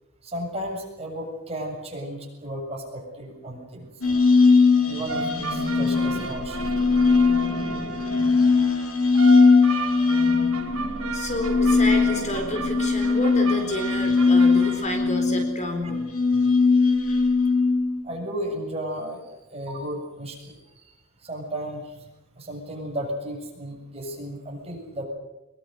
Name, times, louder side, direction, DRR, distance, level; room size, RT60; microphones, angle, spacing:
voice 1, 0.2-3.9 4.8-6.7 15.8-15.9 18.0-20.9 21.2-22.1 22.4-25.0, equal, 30° right, 0 dB, 7.5 m, -34 dB
sound 1, 4.0-18.0, left 4 dB, 75° left, 5.3 m, -20 dB
sound 2, 5.1-8.4 9.1-14.9, right 3 dB, 80° right, 4.7 m, -34 dB
voice 2, 11.1-16.0, left 1 dB, 35° left, 5 dB, 4.2 m, -29 dB
24.0 x 23.0 x 8.0 m, 0.99 s
head